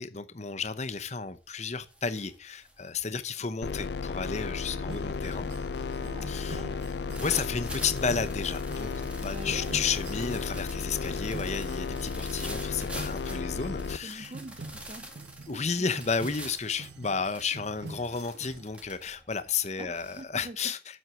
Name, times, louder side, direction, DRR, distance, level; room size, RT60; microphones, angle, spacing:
voice 1, 0.0-5.5 6.3-6.6 7.2-8.9 9.2-14.3 15.5-20.8, left 5 dB, 35° left, 0.8 m, -32 dB
sound 1, 0.6-0.9 1.3-20.2, right 1 dB, 5° right, 1.9 m, -47 dB
voice 2, 3.4-3.9 6.0-6.9 9.2-9.8 14.0-15.1 15.5-15.9 19.8-20.7, right 2 dB, 30° right, 0.5 m, -45 dB
sound 2, 3.6-14.0, left 4 dB, 60° left, 0.4 m, -34 dB
sound 3, 4.7-18.7, right 3 dB, 60° right, 1.1 m, -46 dB
8.0 x 7.9 x 7.5 m
head